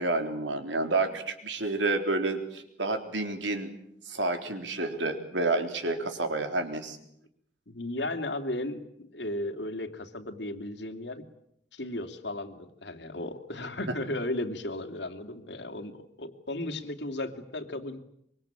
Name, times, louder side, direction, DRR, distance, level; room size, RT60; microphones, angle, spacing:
voice 1, 0.0-3.7 4.1-7.0, right 2 dB, 85° right, 6 dB, 3.8 m, -29 dB
voice 2, 7.7-11.2 11.7-18.0, left 1 dB, 75° left, 7 dB, 2.7 m, -35 dB
25.0 x 24.0 x 8.9 m, 0.74 s
head